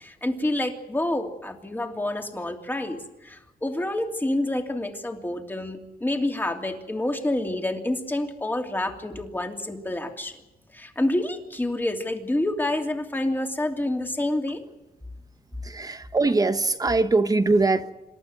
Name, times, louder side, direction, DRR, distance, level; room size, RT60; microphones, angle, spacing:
voice 1, 0.0-10.3 10.7-14.6, left 1 dB, 10° left, 4 dB, 2.9 m, -28 dB
voice 2, 15.6-17.9, right 3 dB, 25° right, 9 dB, 1.2 m, -22 dB
27.0 x 12.5 x 9.2 m, 1.0 s
cardioid pair, 120°, 16 cm